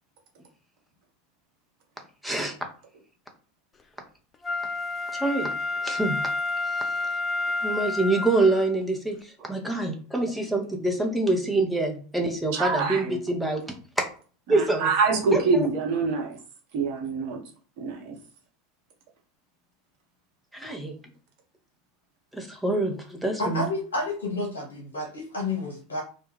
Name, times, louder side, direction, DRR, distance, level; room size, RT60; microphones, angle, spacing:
voice 1, 2.2-2.5 5.1-5.5 5.8-6.2 6.7-6.9 7.6-13.7 14.5-14.9 15.3-15.7 20.5-21.0 22.3-23.7, right 2 dB, ahead, 1 dB, 0.7 m, -26 dB
Wind instrument woodwind instrument, 4.4-8.7 9.2-9.3, left 3 dB, 25° left, 0.3 m, -29 dB
voice 2, 12.5-13.2 14.5-16.4 16.7-17.4 17.8-18.2, right 4 dB, 55° right, 1 dB, 0.8 m, -25 dB
voice 3, 23.4-26.0, left 2 dB, 65° left, -2 dB, 0.8 m, -30 dB
2.2 x 2.1 x 3.2 m, 0.40 s
figure-of-eight pair, 80°, 0 cm